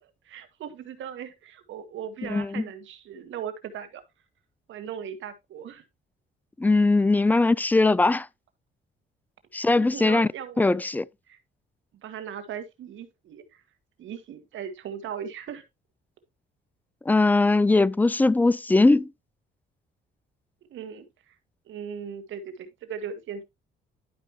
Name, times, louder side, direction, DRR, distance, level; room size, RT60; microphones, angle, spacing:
voice 1, 0.0-4.0 4.7-5.8 9.7-10.7 11.3-11.4 12.0-13.6 14.0-15.6 20.7-21.3 21.7-23.4, right 8 dB, 75° right, 1.6 m, -38 dB
voice 2, 2.3-2.6 6.6-8.3 9.5-10.3 10.6-11.1 17.1-19.1, left 3 dB, 10° left, 0.3 m, -20 dB
11.0 x 5.1 x 3.1 m
cardioid pair, 90°, 20 cm